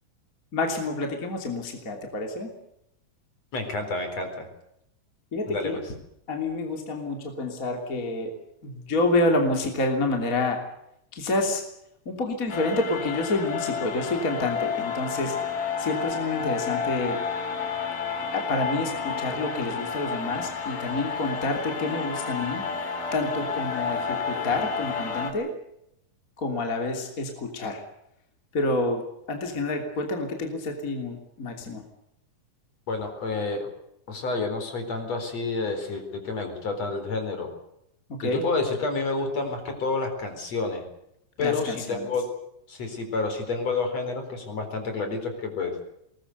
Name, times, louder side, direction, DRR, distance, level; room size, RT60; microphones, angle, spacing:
voice 1, 0.5-2.5 5.3-5.8 6.3-8.3 8.6-10.6 11.1-11.6 12.0-15.4 15.8-17.2 18.3-22.6 23.1-25.5 26.4-27.8 28.5-29.0 29.3-31.8 38.1-38.4 41.4-42.1, left 2 dB, 25° left, 3 dB, 3.2 m, -28 dB
voice 2, 3.5-4.5 5.5-5.8 32.9-33.7 34.1-37.5 38.2-40.9 41.4-42.3 42.7-45.7, left 3 dB, 50° left, 6 dB, 5.3 m, -29 dB
sound 1, 12.5-25.3, left 6 dB, 75° left, 4.7 m, -31 dB
22.0 x 19.5 x 8.1 m, 0.79 s
omnidirectional pair, 3.8 m